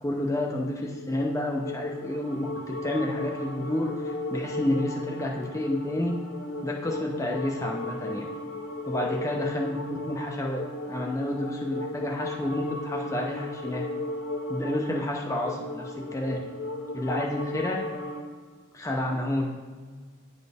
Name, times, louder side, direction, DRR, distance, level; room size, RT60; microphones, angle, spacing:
voice 1, 0.0-6.1 6.6-8.3 8.9-9.8 10.1-13.8 14.5-16.4 16.9-17.9 18.7-19.5, left 1 dB, 15° left, -1 dB, 0.6 m, -30 dB
sound 1, 0.7-18.3, left 2 dB, 85° left, 1.0 m, -36 dB
9.6 x 4.2 x 3.4 m, 1.5 s
head